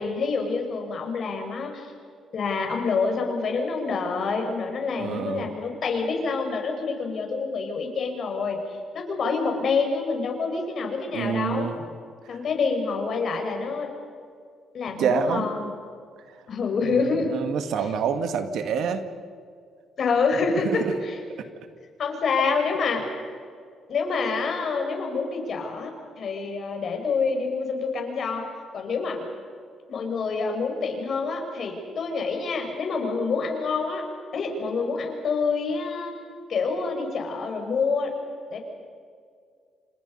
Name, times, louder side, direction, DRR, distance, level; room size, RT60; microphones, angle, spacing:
voice 1, 0.0-1.9 2.3-8.6 8.9-11.7 12.3-13.9 14.7-15.7 16.5-17.3 20.0-21.2 22.0-23.0 23.9-28.4 28.7-29.2 29.9-34.0 34.3-36.1 36.5-38.1 38.5-38.6, left 4 dB, 55° left, 3 dB, 6.2 m, -27 dB
voice 2, 5.0-5.5 11.1-11.9 12.3-12.4 15.0-15.5 16.9-19.0 20.6-20.9, right 6 dB, 75° right, 8 dB, 2.0 m, -27 dB
29.0 x 26.5 x 5.6 m, 2.2 s
cardioid pair, 90°, 0 cm